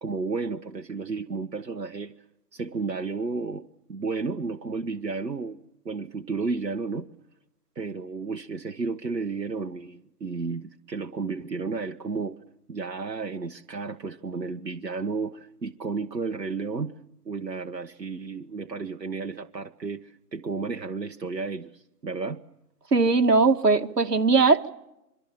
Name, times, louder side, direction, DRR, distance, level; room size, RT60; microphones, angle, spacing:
voice 1, 0.0-2.1 2.5-5.6 5.8-7.1 7.7-12.4 12.7-16.9 17.2-22.4, right 4 dB, 90° right, 4 dB, 1.4 m, -32 dB
voice 2, 22.9-24.7, right 4 dB, 70° right, 5 dB, 2.1 m, -20 dB
26.5 x 23.5 x 7.6 m, 0.88 s
figure-of-eight pair, 160°, 49 cm